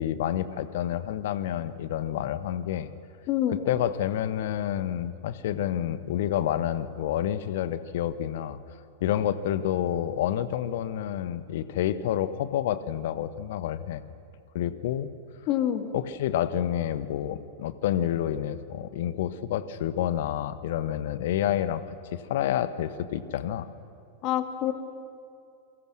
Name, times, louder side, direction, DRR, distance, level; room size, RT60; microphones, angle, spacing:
voice 1, 0.0-2.9 3.6-8.6 9.0-14.0 14.5-15.1 15.9-21.8 22.1-23.7, left 11 dB, 55° left, 13 dB, 1.2 m, -29 dB
voice 2, 3.3-3.6 15.5-15.9 24.2-24.7, left 11 dB, 40° left, 7 dB, 2.0 m, -26 dB
29.0 x 23.5 x 6.3 m, 2.5 s
figure-of-eight pair, 90°, 0 cm